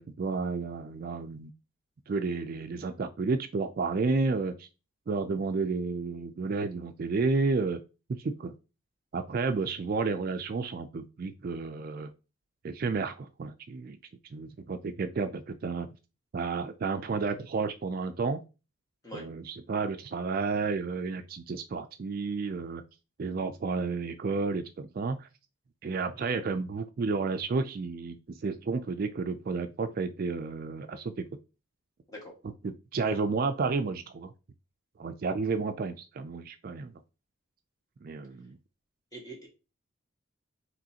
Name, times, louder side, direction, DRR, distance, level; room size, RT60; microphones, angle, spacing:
voice 1, 0.0-1.5 2.1-4.7 5.1-7.8 8.2-8.5 9.1-12.1 12.6-14.0 14.3-15.9 16.3-18.4 19.1-22.8 23.2-25.3 25.8-31.3 32.6-34.3 35.0-37.0 38.0-38.6, right 4 dB, 45° right, 8 dB, 0.3 m, -31 dB
voice 2, 39.1-39.5, equal, 15° left, -1 dB, 1.5 m, -42 dB
5.1 x 3.1 x 2.8 m, 0.30 s
head